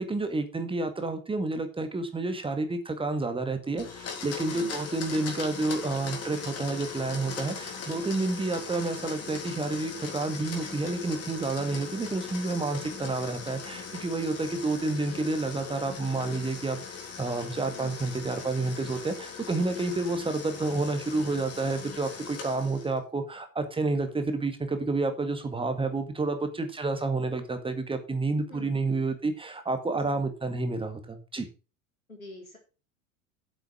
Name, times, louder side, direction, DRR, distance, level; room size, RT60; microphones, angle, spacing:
voice 1, 0.0-16.8 17.2-31.5, right 3 dB, 15° right, 7 dB, 1.9 m, -30 dB
Domestic sounds home sounds, 3.8-23.0, left 5 dB, 35° left, 3.5 m, -40 dB
voice 2, 4.5-4.8 17.7-18.0 28.5-28.7 30.0-30.1 32.1-32.6, left 2 dB, 85° left, 2 dB, 3.6 m, -45 dB
8.3 x 8.2 x 6.2 m, 0.33 s
figure-of-eight pair, 75°, 40 cm